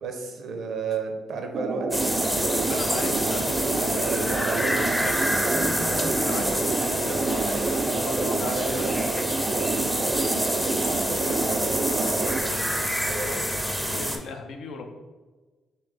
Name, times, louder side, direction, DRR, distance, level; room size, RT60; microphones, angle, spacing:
voice 1, 0.0-2.7 3.8-4.7 8.5-9.0 10.1-10.5 10.8-13.5, right 4 dB, 65° right, 5 dB, 0.7 m, -34 dB
sound 1, 1.5-12.4, right 4 dB, 45° right, 0.3 m, -28 dB
sound 2, 1.9-14.2, equal, ahead, 0.6 m, -27 dB
voice 2, 2.4-5.1 5.9-9.0 10.3-10.4 10.9-11.6 13.9-14.9, left 4 dB, 70° left, 4 dB, 0.6 m, -37 dB
4.2 x 3.4 x 3.3 m, 1.3 s
cardioid pair, 90°, 0 cm